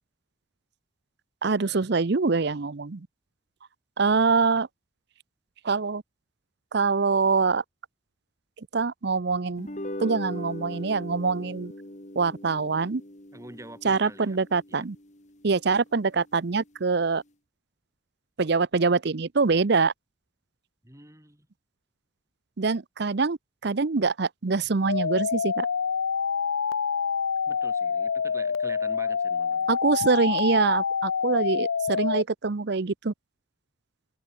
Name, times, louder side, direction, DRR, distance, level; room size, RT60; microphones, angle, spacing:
voice 1, 1.4-3.1 4.0-4.7 5.6-6.0 6.7-7.6 8.7-9.7 10.0-11.7 12.2-13.0 13.8-15.0 15.4-17.2 18.4-19.9 22.6-23.4 23.6-25.7 29.7-33.1, right 4 dB, 55° right, 0.6 m, -24 dB
sound 1, 9.6-16.1, left 1 dB, 35° left, 2.8 m, -41 dB
voice 2, 13.3-14.4 14.7-14.8 20.8-21.5 27.5-30.0, right 1 dB, 15° right, 4.8 m, -46 dB
sound 2, 24.9-32.2, left 6 dB, 85° left, 0.6 m, -27 dB
head